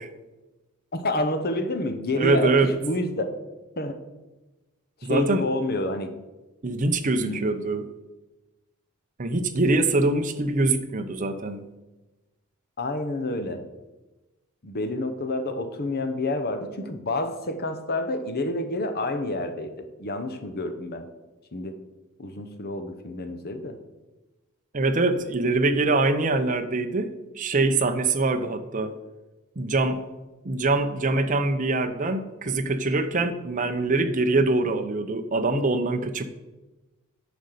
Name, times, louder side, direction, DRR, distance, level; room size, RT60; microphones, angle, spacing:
voice 1, 0.9-3.3 3.8-4.0 5.0-6.1 7.2-7.4 12.8-13.6 14.6-21.1 21.5-21.8 22.2-23.7, left 2 dB, 45° left, 8 dB, 0.9 m, -29 dB
voice 2, 2.2-2.7 5.0-5.4 6.6-7.8 9.2-11.6 24.7-28.9 29.6-30.0 30.4-36.2, right 2 dB, 35° right, 7 dB, 0.7 m, -24 dB
9.6 x 5.3 x 6.5 m, 1.1 s
head